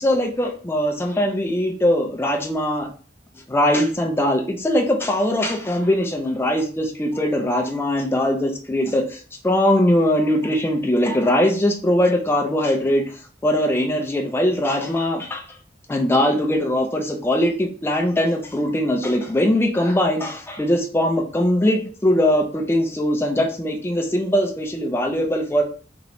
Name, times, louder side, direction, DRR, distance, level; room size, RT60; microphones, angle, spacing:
voice 1, 0.0-2.9 3.5-15.5 15.9-25.6, left 1 dB, 15° left, 2 dB, 0.4 m, -21 dB
3.0 x 2.9 x 2.6 m, 0.41 s
head